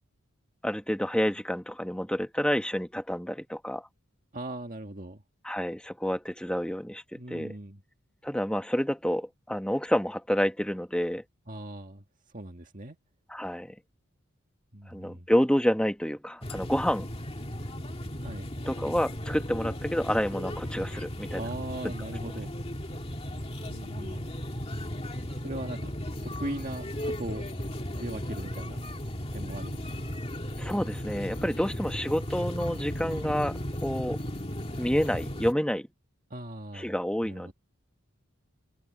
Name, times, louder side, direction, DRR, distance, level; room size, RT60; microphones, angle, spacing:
voice 1, 0.6-3.9 5.4-7.5 8.2-11.2 13.3-13.7 14.9-17.1 18.7-21.4 21.8-21.9 30.6-34.2 34.8-35.9 36.7-37.5, equal, 5° left, 1.5 m, -29 dB
voice 2, 4.3-5.2 7.2-7.8 11.5-12.0 12.3-13.0 14.7-15.3 18.2-18.5 21.4-22.5 23.6-24.3 25.4-25.9 26.2-27.5 28.0-28.8 29.3-30.1 31.7-32.0 36.3-37.0 37.2-37.5, right 1 dB, 40° right, 1.9 m, -39 dB
sound 1, 16.4-35.5, equal, 30° left, 2.2 m, -36 dB
head